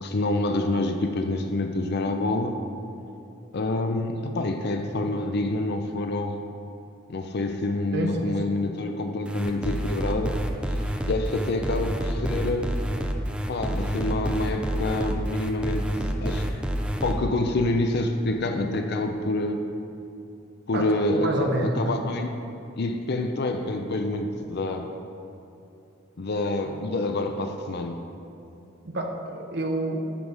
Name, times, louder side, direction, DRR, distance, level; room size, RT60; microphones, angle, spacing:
voice 1, 0.0-2.6 3.5-6.4 7.1-10.3 11.1-12.7 13.5-16.0 16.2-16.6 17.0-19.6 20.7-22.3 22.8-24.9 26.2-28.0, left 2 dB, 55° left, 6 dB, 0.5 m, -27 dB
voice 2, 7.9-8.4 20.7-20.9 21.2-22.0 28.9-30.0, right 1 dB, 55° right, 2 dB, 1.0 m, -28 dB
sound 1, 9.3-17.1, equal, 5° right, 0.5 m, -28 dB
11.5 x 4.7 x 5.5 m, 2.7 s
head